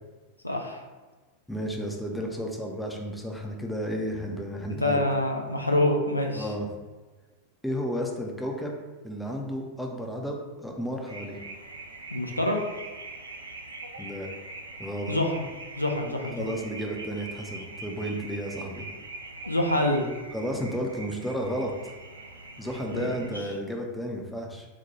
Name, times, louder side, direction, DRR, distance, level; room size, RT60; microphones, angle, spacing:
voice 1, 0.4-0.8 4.7-6.5 12.1-12.6 15.1-15.4 15.8-16.4 19.5-20.1 22.9-23.1, left 1 dB, 85° left, 1 dB, 0.4 m, -26 dB
voice 2, 1.5-5.0 6.4-6.7 7.6-8.7 9.0-11.4 14.0-14.3 14.8-15.1 16.4-18.8 20.3-21.9 22.6-24.7, equal, 5° left, 1 dB, 0.5 m, -32 dB
sound 1, 11.1-23.3, right 2 dB, 75° right, 0.4 m, -43 dB
4.2 x 2.1 x 2.9 m, 1.3 s
figure-of-eight pair, 90°, 0 cm